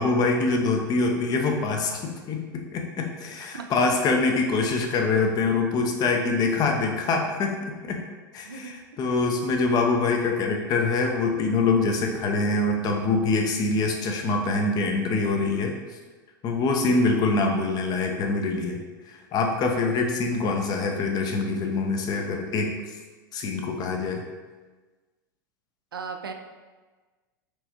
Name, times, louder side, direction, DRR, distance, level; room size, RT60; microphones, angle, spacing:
voice 1, 0.0-2.4 2.7-7.6 7.8-8.0 8.3-15.7 16.4-22.8 23.3-24.2, left 3 dB, 35° left, 3 dB, 0.6 m, -24 dB
voice 2, 3.4-3.8 8.4-8.8 9.6-9.7 25.9-26.3, right 5 dB, 80° right, 5 dB, 0.4 m, -37 dB
4.5 x 3.2 x 2.8 m, 1.3 s
figure-of-eight pair, 90°, 12 cm